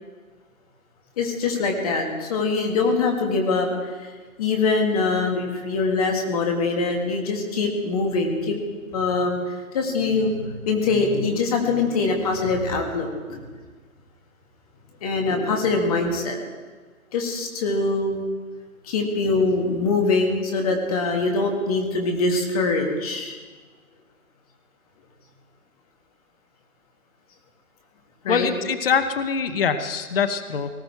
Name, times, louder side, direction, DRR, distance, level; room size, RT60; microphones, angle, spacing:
voice 1, 1.2-4.1 4.4-8.6 8.9-10.4 10.7-13.4 15.0-16.4 17.1-18.2 18.8-23.4 28.2-28.5, left 3 dB, 25° left, 2 dB, 2.0 m, -23 dB
voice 2, 28.3-30.7, left 6 dB, 40° left, 10 dB, 0.9 m, -23 dB
19.0 x 15.0 x 4.6 m, 1.4 s
figure-of-eight pair, 150°, 43 cm